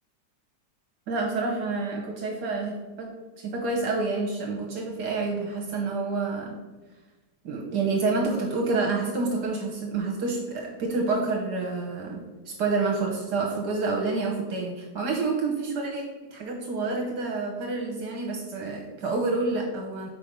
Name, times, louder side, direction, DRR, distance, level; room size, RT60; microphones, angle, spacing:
voice 1, 1.1-6.6 7.4-16.1 16.3-20.1, right 3 dB, 75° right, -1 dB, 1.6 m, -28 dB
5.9 x 4.6 x 5.2 m, 1.2 s
omnidirectional pair, 1.8 m